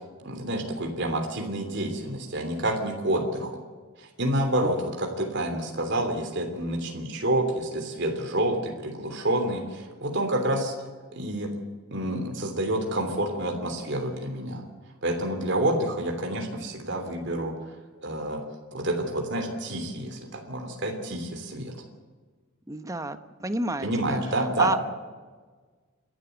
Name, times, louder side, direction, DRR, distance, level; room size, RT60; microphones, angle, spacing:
voice 1, 0.2-3.6 4.0-10.7 11.1-11.5 11.9-14.6 15.0-17.5 18.0-18.4 18.7-21.7 23.8-24.8, right 1 dB, 55° right, 3 dB, 3.1 m, -28 dB
voice 2, 22.7-24.2 24.6-24.8, right 2 dB, 15° right, 10 dB, 1.0 m, -30 dB
29.5 x 12.5 x 8.0 m, 1.4 s
head